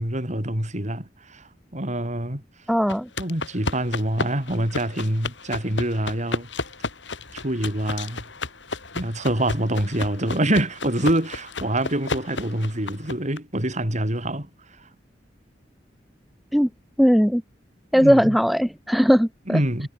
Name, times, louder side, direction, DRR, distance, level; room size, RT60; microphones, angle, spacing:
voice 1, 0.0-1.4 1.7-2.4 3.2-6.5 7.3-8.2 8.9-14.5 17.9-18.4 19.5-19.9, right 1 dB, 40° right, 5.8 m, -25 dB
voice 2, 2.7-3.1 16.5-16.7 17.0-17.4 17.9-19.6, equal, ahead, 0.7 m, -18 dB
sound 1, 2.9-13.4, left 3 dB, 90° left, 5.5 m, -33 dB
head